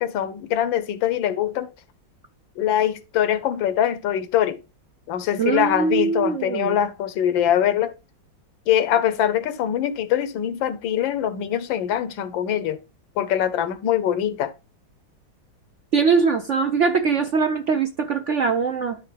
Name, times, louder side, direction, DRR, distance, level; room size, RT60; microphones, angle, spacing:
voice 1, 0.0-1.7 2.6-4.6 5.1-7.9 8.7-12.8 13.2-14.5, left 10 dB, 90° left, 1.5 m, -23 dB
voice 2, 5.4-6.8 15.9-19.0, right 5 dB, 65° right, 0.7 m, -22 dB
12.5 x 4.2 x 3.3 m
omnidirectional pair, 2.0 m